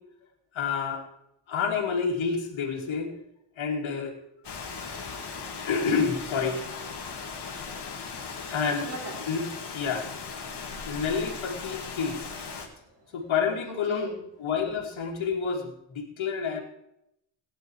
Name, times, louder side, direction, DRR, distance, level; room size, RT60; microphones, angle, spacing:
voice 1, 0.5-1.0 1.5-3.1 3.6-4.2 5.6-6.6 8.5-8.9 9.3-9.5 9.7-10.1 10.8-12.2 13.1-14.1 14.4-16.6, left 6 dB, 75° left, 0 dB, 2.7 m, -28 dB
Rain, 4.4-12.7, left 5 dB, 55° left, 2.3 m, -38 dB
voice 2, 8.8-9.4 12.6-13.2 13.6-14.2, right 2 dB, 50° right, -7 dB, 6.0 m, -39 dB
16.0 x 10.0 x 4.7 m, 0.81 s
cardioid pair, 110°, 48 cm